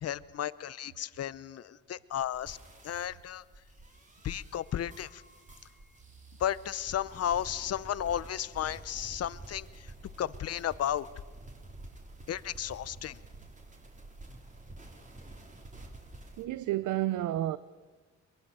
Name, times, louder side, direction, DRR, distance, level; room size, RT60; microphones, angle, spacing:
voice 1, 0.0-2.6 2.8-3.4 4.2-5.2 6.4-9.9 10.2-11.1 12.3-13.2, left 10 dB, 55° left, 0.8 m, -34 dB
sound 1, 2.1-16.4, right 2 dB, 25° right, 3.8 m, -50 dB
voice 2, 16.4-17.6, right 14 dB, 80° right, 0.7 m, -30 dB
22.5 x 22.5 x 7.0 m
cardioid pair, 90°, 30 cm